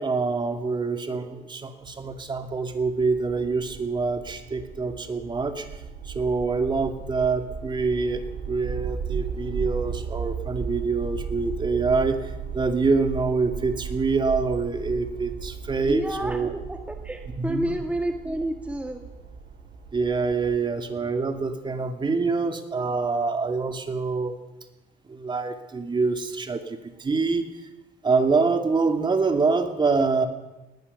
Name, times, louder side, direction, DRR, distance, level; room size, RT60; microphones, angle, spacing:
voice 1, 0.0-5.7 6.0-8.2 8.5-16.5 17.4-17.8 19.9-24.4 25.1-27.5 28.0-30.3, right 4 dB, 25° right, 7 dB, 2.4 m, -25 dB
sound 1, 1.8-20.6, right 6 dB, 55° right, 3.5 m, -36 dB
voice 2, 15.8-19.0, right 1 dB, 10° right, 4 dB, 1.6 m, -30 dB
20.5 x 18.5 x 6.8 m, 1.0 s
cardioid pair, 110°, 17 cm